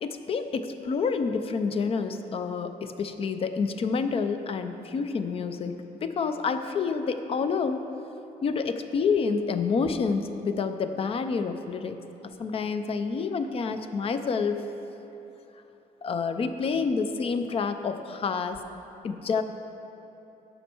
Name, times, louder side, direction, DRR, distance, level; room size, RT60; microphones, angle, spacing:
voice 1, 0.0-7.8 8.4-12.0 12.4-14.6 16.0-18.6 19.0-19.4, left 5 dB, 40° left, 9 dB, 0.5 m, -28 dB
14.5 x 5.4 x 4.4 m, 2.9 s
cardioid pair, 140°, 14 cm